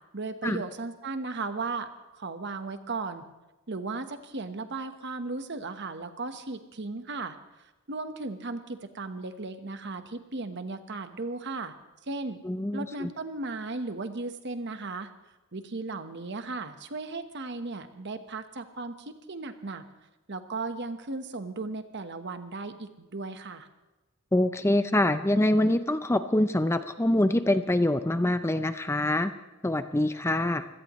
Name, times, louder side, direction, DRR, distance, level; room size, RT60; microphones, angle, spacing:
voice 1, 0.1-3.2 3.7-7.4 7.9-11.7 12.1-12.4 12.7-15.1 15.5-19.8 20.3-23.7, right 3 dB, 55° right, 9 dB, 1.2 m, -36 dB
voice 2, 12.4-13.1 24.3-29.3 29.6-30.7, left 1 dB, 10° left, 10 dB, 0.5 m, -25 dB
25.5 x 17.0 x 3.1 m, 1.1 s
head